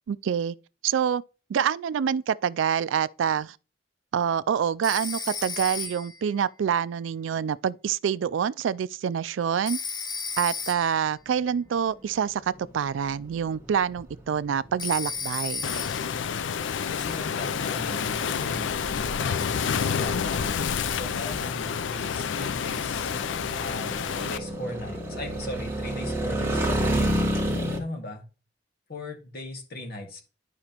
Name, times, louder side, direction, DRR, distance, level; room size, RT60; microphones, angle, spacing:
voice 1, 0.1-0.6 0.8-1.2 1.5-3.6 4.1-9.8 10.4-15.7, right 8 dB, 85° right, 0.3 m, -26 dB
Telephone, 4.8-6.3 9.7-11.1 14.8-16.2, left 4 dB, 25° left, 0.7 m, -34 dB
sound 1, 11.7-27.8, right 1 dB, 15° right, 1.4 m, -32 dB
Waves surf, 15.6-24.4, left 7 dB, 75° left, 0.4 m, -29 dB
voice 2, 16.9-20.6 20.9-23.1 23.6-27.0 27.7-28.2 28.9-30.2, left 1 dB, 55° left, 1.9 m, -38 dB
11.5 x 4.9 x 2.9 m
head